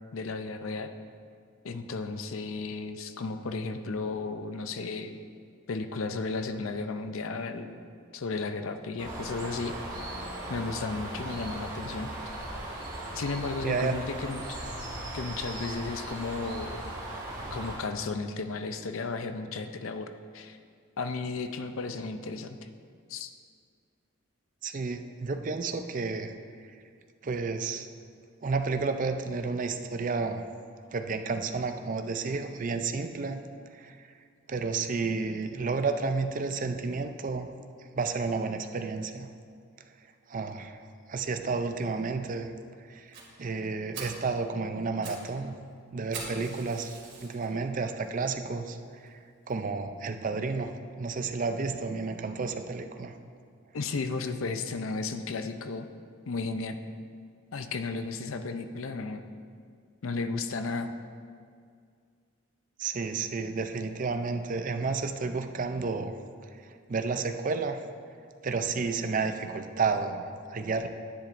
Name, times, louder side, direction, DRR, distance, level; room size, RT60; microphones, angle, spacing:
voice 1, 0.1-0.9 1.6-5.2 5.7-7.8 8.1-9.7 10.5-12.1 13.1-14.6 15.1-16.8 17.5-20.6 21.0-22.6 23.1-23.3 53.7-55.9 56.3-56.8 57.5-59.2 60.0-60.9, left 4 dB, 75° left, 8 dB, 0.5 m, -34 dB
Bird, 9.0-17.8, right 1 dB, 20° right, 1.9 m, -38 dB
voice 2, 13.6-14.0 24.6-26.4 26.7-26.8 27.2-27.9 28.4-30.5 30.9-33.4 33.7-34.1 34.5-37.5 37.9-39.3 40.3-42.5 42.9-45.5 45.9-49.2 49.5-50.7 51.0-53.1 62.8-66.2 66.6-67.8 68.4-70.9, right 4 dB, 40° right, 7 dB, 0.4 m, -31 dB
Fire, 43.1-43.3 43.7-43.8 43.9-44.2 44.8-45.3 45.5-45.6 46.1-47.5 48.0-48.1 48.7-48.8 49.1-49.2 49.5-49.6, right 4 dB, 55° right, 2.2 m, -42 dB
10.5 x 10.0 x 2.6 m, 2.2 s
head